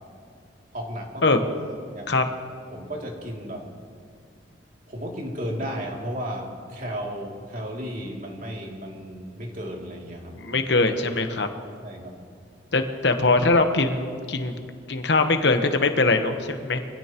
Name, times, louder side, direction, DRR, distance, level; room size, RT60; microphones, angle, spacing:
voice 1, 0.7-1.2 1.9-2.1 2.7-3.7 4.9-10.3 11.8-12.1, equal, 45° right, -1 dB, 2.7 m, -34 dB
voice 2, 10.4-11.5 12.7-14.5 14.9-16.8, left 3 dB, 65° left, 6 dB, 1.1 m, -22 dB
24.0 x 16.5 x 3.0 m, 2.2 s
head